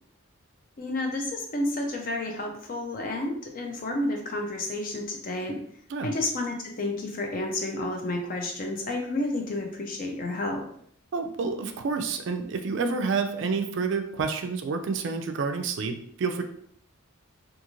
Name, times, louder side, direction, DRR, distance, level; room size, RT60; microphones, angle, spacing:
voice 1, 0.8-5.6 6.0-10.7, left 2 dB, 40° left, 2 dB, 0.4 m, -30 dB
voice 2, 11.1-16.4, right 4 dB, 55° right, 6 dB, 0.3 m, -29 dB
2.5 x 2.4 x 2.9 m, 0.64 s
head